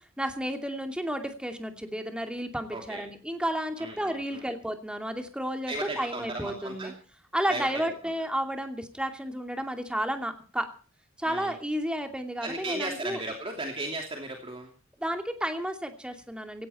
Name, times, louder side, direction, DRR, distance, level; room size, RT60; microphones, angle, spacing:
voice 1, 0.2-6.9 7.3-10.7 11.2-13.2 15.0-16.7, equal, 5° right, 5 dB, 2.5 m, -32 dB
voice 2, 2.7-3.0 3.8-4.4 5.7-6.9 7.5-7.8 11.3-11.5 12.4-14.7, right 2 dB, 25° right, 2 dB, 2.8 m, -35 dB
17.5 x 16.0 x 4.3 m, 0.39 s
head